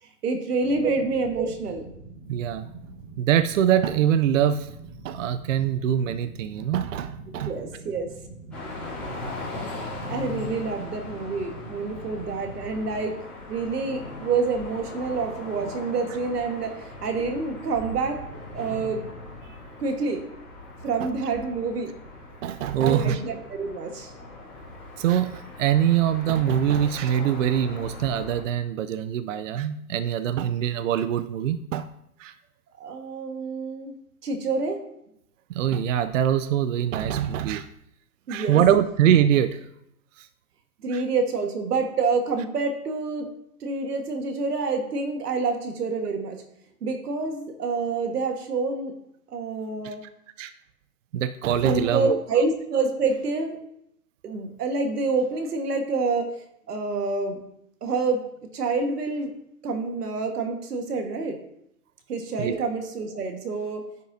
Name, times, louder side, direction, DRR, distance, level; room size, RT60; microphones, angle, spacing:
voice 1, 0.2-1.9 7.4-8.1 10.1-13.2 13.5-18.2 18.5-19.1 19.8-20.3 20.8-21.9 22.8-24.1 32.8-33.9 34.2-34.9 38.3-38.6 40.8-43.3 43.6-46.4 46.8-48.9 49.3-50.0 51.6-53.6 54.2-56.3 56.7-57.4 57.8-58.3 58.5-59.3 59.6-61.4 62.1-63.8, right 4 dB, 75° right, 5 dB, 1.6 m, -27 dB
sound 1, 0.6-12.5, right 3 dB, 35° right, 1.6 m, -44 dB
voice 2, 2.3-2.7 3.2-4.7 5.0-7.5 21.0-21.1 22.4-23.2 25.0-31.9 32.2-32.3 35.5-37.7 38.3-39.6 40.2-40.3 40.9-41.0 49.8-49.9 50.4-50.5 51.1-52.2 62.4-62.7, right 10 dB, 55° right, 11 dB, 0.5 m, -23 dB
sound 2, 8.5-28.4, left 2 dB, ahead, 2.8 m, -39 dB
10.0 x 5.4 x 2.7 m, 0.77 s
hypercardioid pair, 140°, 47 cm